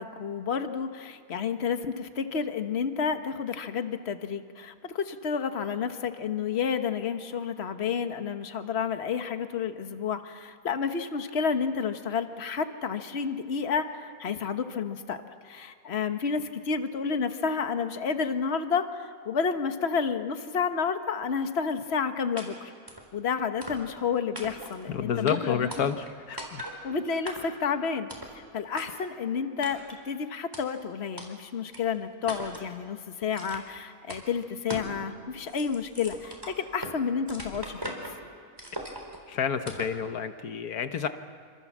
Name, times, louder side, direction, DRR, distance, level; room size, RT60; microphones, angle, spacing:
voice 1, 0.0-15.2 15.4-22.7 23.1-25.9 26.8-37.9, left 6 dB, 45° left, 8 dB, 1.5 m, -30 dB
sound 1, 22.4-22.5 22.9-23.1 23.6-24.0 24.3-24.8 25.3-25.4 25.7-26.1 26.4-26.8 27.3-27.6 28.1-28.3 28.8-28.9 29.6-30.0 30.5-30.6 31.2-31.3 31.7-31.8 32.3-32.7 33.3-33.8 34.1-34.2 34.7-34.9 35.3-37.0 37.3-38.2 38.6-39.2 39.7-40.0, equal, 15° right, 4.0 m, -39 dB
voice 2, 24.9-26.6 39.3-41.1, left 7 dB, 80° left, 9 dB, 1.5 m, -30 dB
27.5 x 26.0 x 7.4 m, 2.1 s
omnidirectional pair, 1.6 m